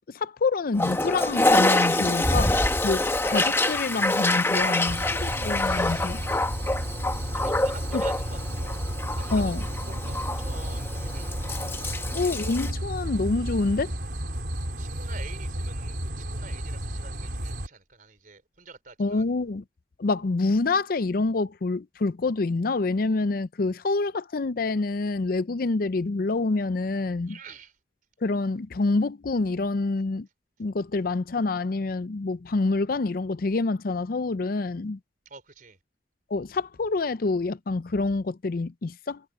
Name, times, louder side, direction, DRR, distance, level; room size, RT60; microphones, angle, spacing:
voice 1, 0.1-6.2 7.9-8.0 9.3-9.6 12.1-13.9 19.0-19.6 20.0-27.4 28.2-30.3 30.6-35.0 36.3-39.2, left 3 dB, 55° left, 0.5 m, -27 dB
Toilet flush, 0.7-12.7, left 2 dB, 15° left, 0.9 m, -26 dB
voice 2, 4.5-6.1 7.3-8.8 9.2-12.1 14.8-19.2 27.3-27.7 35.3-35.8, right 4 dB, 50° right, 3.9 m, -47 dB
sound 1, 4.9-17.7, right 1 dB, 70° right, 4.1 m, -32 dB
head